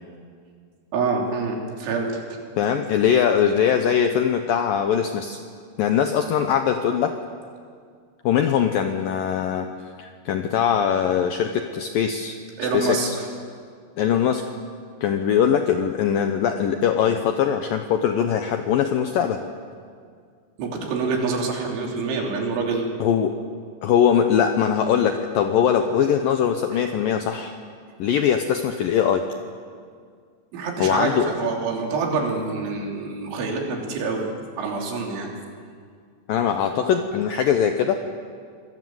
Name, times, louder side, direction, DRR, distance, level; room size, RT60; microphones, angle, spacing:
voice 1, 0.9-2.4 12.6-13.3 20.6-22.9 26.7-26.8 30.5-34.3 34.6-35.3, right 4 dB, 90° right, 0 dB, 5.7 m, -26 dB
voice 2, 2.6-5.4 5.8-7.2 8.2-9.7 10.0-12.4 12.7-13.2 14.0-14.4 15.0-19.4 23.0-23.4 23.8-27.5 28.0-29.3 30.8-31.3 36.3-38.0, left 8 dB, 80° left, 6 dB, 2.0 m, -21 dB
26.5 x 20.5 x 7.8 m, 2.1 s
omnidirectional pair, 5.3 m